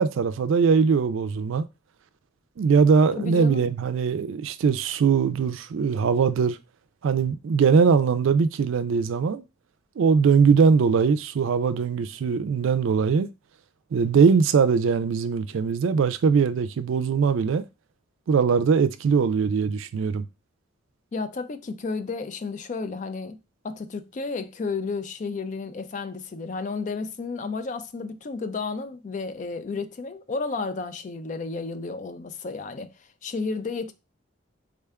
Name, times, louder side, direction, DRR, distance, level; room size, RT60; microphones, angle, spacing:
voice 1, 0.0-1.6 2.6-6.6 7.0-9.4 10.0-13.3 13.9-17.6 18.3-20.3, right 5 dB, 80° right, 0.4 m, -21 dB
voice 2, 3.2-3.7 21.1-23.4 23.6-33.9, left 4 dB, 40° left, 0.3 m, -32 dB
3.6 x 2.2 x 3.4 m
head